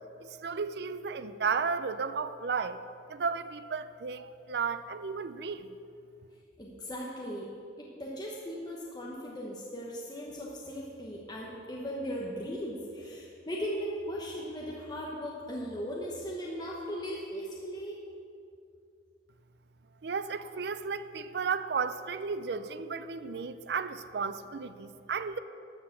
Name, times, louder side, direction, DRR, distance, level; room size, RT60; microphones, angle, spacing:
voice 1, 0.2-2.8 3.1-5.7 20.0-25.4, right 5 dB, 60° right, 12 dB, 0.4 m, -34 dB
voice 2, 6.6-18.0, equal, 20° left, -4 dB, 1.1 m, -38 dB
13.0 x 4.8 x 7.3 m, 2.5 s
head